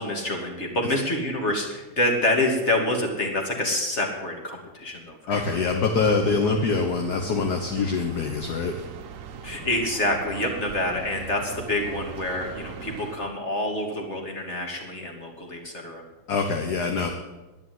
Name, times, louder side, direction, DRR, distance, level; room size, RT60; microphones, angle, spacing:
voice 1, 0.0-5.6 9.4-16.0, left 1 dB, 35° left, 2 dB, 2.7 m, -27 dB
voice 2, 5.3-8.8 16.3-17.1, left 4 dB, 60° left, 4 dB, 1.6 m, -24 dB
sound 1, 5.3-13.2, right 7 dB, 55° right, 1.0 m, -40 dB
10.5 x 10.0 x 9.4 m, 1.1 s
omnidirectional pair, 2.1 m